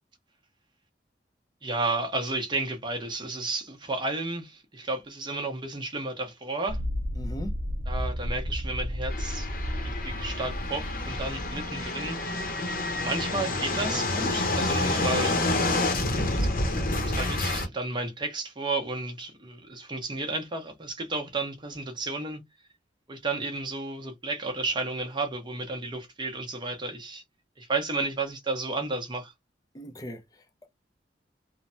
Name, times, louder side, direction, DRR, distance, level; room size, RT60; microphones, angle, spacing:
voice 1, 1.6-6.8 7.9-9.5 9.8-12.2 13.0-15.8 16.3-16.6 17.0-22.4 23.1-27.2 27.6-29.3, right 3 dB, 25° right, 0.8 m, -32 dB
sound 1, 6.7-11.9, equal, 75° right, 1.0 m, -33 dB
voice 2, 7.2-7.6 29.7-30.7, equal, 20° left, 0.5 m, -39 dB
sound 2, 9.1-17.7, left 2 dB, 50° left, 0.8 m, -28 dB
3.2 x 2.1 x 2.6 m
head